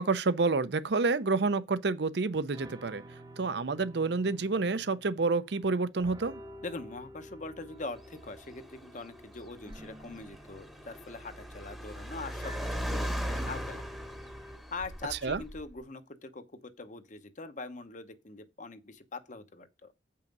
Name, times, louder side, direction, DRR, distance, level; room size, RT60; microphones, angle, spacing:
voice 1, 0.0-6.4 15.2-15.4, right 3 dB, 60° right, 0.6 m, -29 dB
sound 1, 2.2-2.3 2.5-5.7 6.0-14.6, right 1 dB, 20° right, 0.6 m, -50 dB
voice 2, 6.6-13.8 14.7-19.9, left 3 dB, 40° left, 0.9 m, -43 dB
Car, 7.8-15.8, equal, ahead, 1.0 m, -39 dB
8.1 x 5.7 x 5.3 m
head